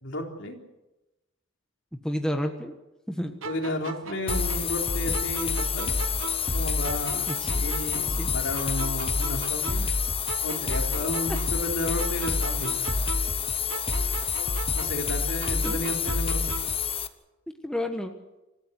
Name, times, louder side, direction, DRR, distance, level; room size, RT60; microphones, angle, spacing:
voice 1, 0.0-0.6 3.4-5.9 6.5-7.3 7.6-9.9 10.4-12.7 14.7-16.5, left 1 dB, 60° left, 2 dB, 3.8 m, -32 dB
voice 2, 2.0-2.7 3.1-3.3 7.3-7.6 8.2-8.3 11.3-11.4 15.4-15.8 17.6-18.1, equal, 5° left, 4 dB, 1.3 m, -30 dB
sound 1, 3.4-6.6 6.8-10.0 10.3-13.4 13.7-16.8, right 4 dB, 70° right, 1.4 m, -39 dB
sound 2, 4.3-17.1, left 5 dB, 30° left, 1.1 m, -28 dB
27.5 x 15.0 x 8.3 m, 1.0 s
head